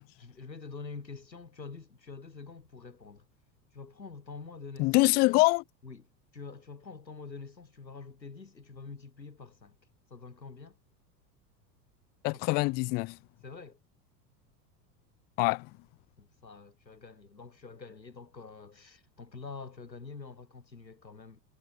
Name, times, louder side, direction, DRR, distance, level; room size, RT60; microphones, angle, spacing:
voice 1, 0.2-3.3 3.7-5.1 5.8-9.8 10.1-10.8 12.3-12.7 13.4-13.8 16.2-21.4, left 4 dB, 85° left, 2.2 m, -46 dB
voice 2, 4.8-5.6 12.2-13.2 15.4-15.7, left 26 dB, 20° left, 0.4 m, -24 dB
figure-of-eight pair, 80°, 50 cm